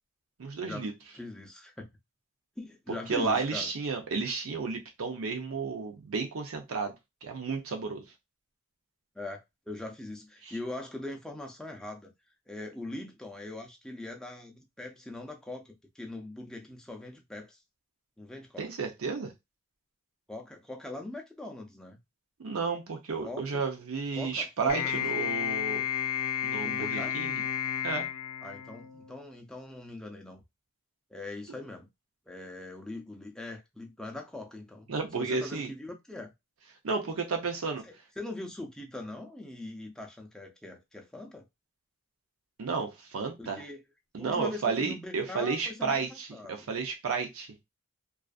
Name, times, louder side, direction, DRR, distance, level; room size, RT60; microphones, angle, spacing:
voice 1, 0.4-0.9 3.1-6.9 7.2-8.1 10.5-10.6 18.6-19.3 22.4-25.9 26.4-27.4 27.8-28.1 34.9-35.7 36.8-37.8 42.6-43.6 44.1-47.6, right 4 dB, 75° right, 0.6 m, -32 dB
voice 2, 1.1-1.9 2.6-3.7 9.1-12.1 12.5-17.6 18.2-18.7 20.3-22.0 23.2-23.6 24.1-24.8 25.2-25.3 26.6-27.2 28.4-30.4 31.1-31.9 32.3-36.3 37.8-41.5 43.4-43.8 44.2-46.7, left 2 dB, 5° left, 0.4 m, -41 dB
sound 1, 24.7-29.2, left 9 dB, 85° left, 0.5 m, -32 dB
2.4 x 2.4 x 2.4 m
head